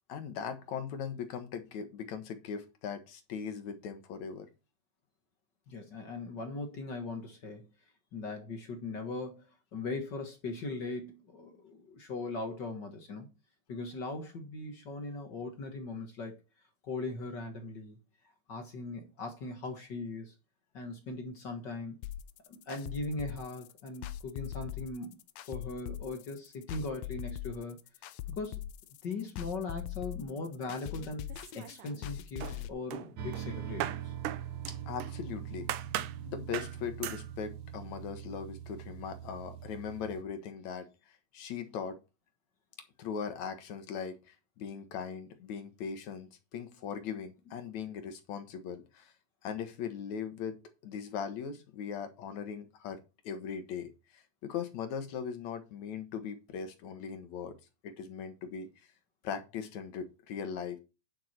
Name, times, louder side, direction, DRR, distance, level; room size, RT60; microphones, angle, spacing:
voice 1, 0.1-4.5 34.9-35.7 36.2-40.9 41.3-42.0 43.0-49.1 49.4-53.0 53.2-57.5 57.8-58.7 59.2-60.8, left 7 dB, 65° left, 2.6 m, -39 dB
voice 2, 5.7-7.7 8.1-9.4 9.7-13.3 13.7-16.3 16.8-18.0 18.5-20.3 20.7-22.0 22.5-27.8 28.4-28.6 29.0-31.3 31.5-34.1, left 3 dB, 45° left, 1.6 m, -39 dB
sound 1, 22.0-32.7, left 12 dB, 80° left, 1.6 m, -41 dB
sound 2, 31.3-32.1 32.4-35.2 35.7-36.2 36.5-36.8 37.0-37.3, right 12 dB, 80° right, 2.3 m, -39 dB
sound 3, 33.2-40.2, right 10 dB, 65° right, 2.3 m, -42 dB
10.5 x 6.2 x 4.5 m
omnidirectional pair, 3.8 m